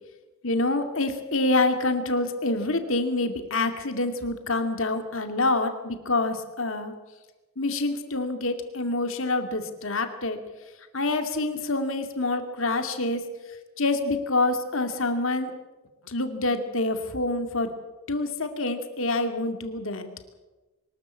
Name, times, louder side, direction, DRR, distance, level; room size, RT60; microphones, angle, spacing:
voice 1, 0.4-6.9 7.6-10.4 10.9-13.2 13.8-15.5 16.1-17.7 18.1-20.1, left 2 dB, 60° left, 7 dB, 2.4 m, -26 dB
24.0 x 13.5 x 8.6 m, 1.2 s
head